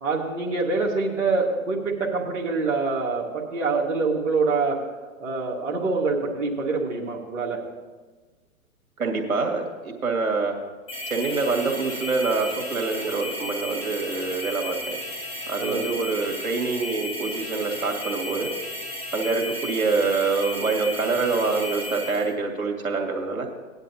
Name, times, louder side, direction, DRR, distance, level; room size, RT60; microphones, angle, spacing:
voice 1, 0.0-4.8 5.2-7.6 15.6-15.9, right 3 dB, 55° right, -4 dB, 1.9 m, -25 dB
voice 2, 9.0-10.5 11.1-15.0 15.5-18.5 19.1-23.5, right 4 dB, 75° right, 1 dB, 2.3 m, -26 dB
sound 1, 10.9-22.3, left 1 dB, 15° left, 2.4 m, -34 dB
17.5 x 10.5 x 2.8 m, 1.3 s
hypercardioid pair, 125°, 43 cm